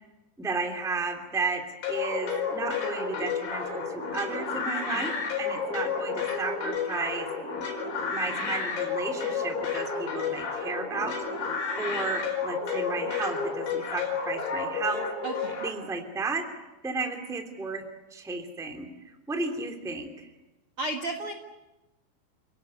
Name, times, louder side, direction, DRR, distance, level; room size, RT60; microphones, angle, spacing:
voice 1, 0.4-1.6 1.9-7.3 8.1-11.4 11.8-15.0 15.6-16.4 16.8-17.8 18.1-18.9 19.3-20.3, right 4 dB, ahead, 4 dB, 1.6 m, -33 dB
sound 1, 1.8-15.7, left 5 dB, 75° left, 6.9 m, -31 dB
voice 2, 15.2-15.7 20.8-21.3, right 2 dB, 55° right, 4 dB, 1.6 m, -33 dB
30.0 x 18.0 x 9.8 m, 1.0 s
omnidirectional pair, 5.2 m